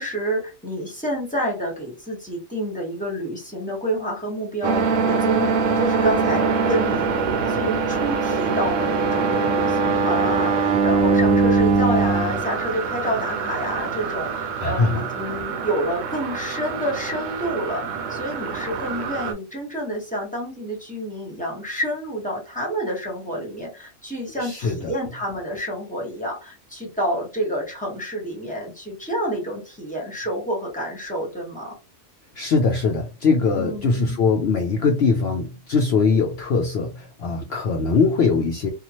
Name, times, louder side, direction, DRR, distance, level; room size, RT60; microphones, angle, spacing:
voice 1, 0.0-5.5 5.8-7.1 7.5-31.7 33.5-34.2, equal, 5° left, -3 dB, 1.1 m, -28 dB
sound 1, 4.6-19.3, right 4 dB, 70° right, 0.9 m, -23 dB
voice 2, 14.6-15.0 24.4-24.9 32.4-38.7, left 4 dB, 65° left, 2 dB, 0.7 m, -21 dB
2.8 x 2.4 x 2.8 m, 0.29 s
omnidirectional pair, 1.4 m